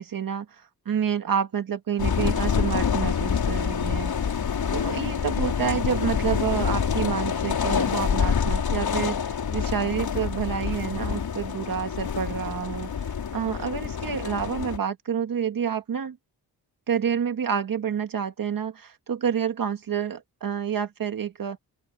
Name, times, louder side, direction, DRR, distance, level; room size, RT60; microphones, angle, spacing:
voice 1, 0.0-4.1 4.7-12.9 13.3-16.2 16.9-21.6, right 8 dB, 55° right, 1.8 m, -28 dB
sound 1, 2.0-14.8, left 7 dB, 60° left, 5.1 m, -27 dB
open air
wide cardioid pair, 145°, 41 cm